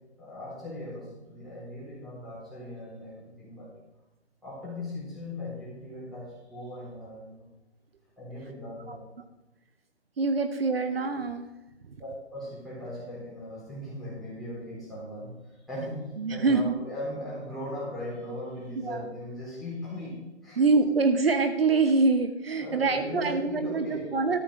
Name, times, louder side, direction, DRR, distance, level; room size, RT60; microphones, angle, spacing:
voice 1, 0.2-3.7 4.4-7.4 8.2-9.0 12.0-20.6 22.6-24.1, left 1 dB, ahead, -10 dB, 4.2 m, -38 dB
voice 2, 10.2-11.5 11.8-12.0 16.2-16.7 18.8-19.0 20.6-24.4, right 3 dB, 60° right, 8 dB, 1.1 m, -25 dB
13.0 x 7.1 x 6.4 m, 1.0 s
hypercardioid pair, 160°, 34 cm